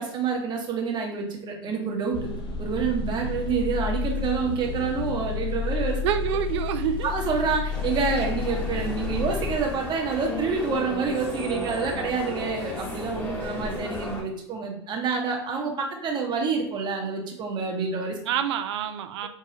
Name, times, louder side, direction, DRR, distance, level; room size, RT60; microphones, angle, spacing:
voice 1, 0.0-2.3 2.6-6.0 7.0-18.2, right 5 dB, 30° right, 1 dB, 1.0 m, -28 dB
sound 1, 2.1-9.6, left 6 dB, 30° left, 0.8 m, -31 dB
voice 2, 6.0-7.1 8.2-8.3 18.3-19.3, right 9 dB, 75° right, 9 dB, 0.4 m, -27 dB
sound 2, 7.7-14.2, left 2 dB, 10° left, 1.1 m, -34 dB
4.7 x 2.3 x 2.8 m, 0.71 s
hypercardioid pair, 115°, 15 cm